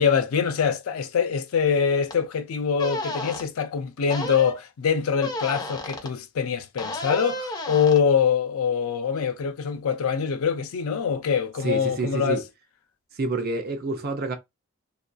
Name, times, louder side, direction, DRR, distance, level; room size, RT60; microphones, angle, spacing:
voice 1, 0.0-12.4, left 6 dB, 80° left, 0.4 m, -24 dB
sound 1, 2.1-2.2 2.8-3.4 4.1-4.6 5.2-6.1 6.8-8.0, left 1 dB, 20° left, 0.5 m, -32 dB
voice 2, 11.6-12.4 13.1-14.3, right 3 dB, 45° right, 0.5 m, -28 dB
2.6 x 2.3 x 2.2 m
head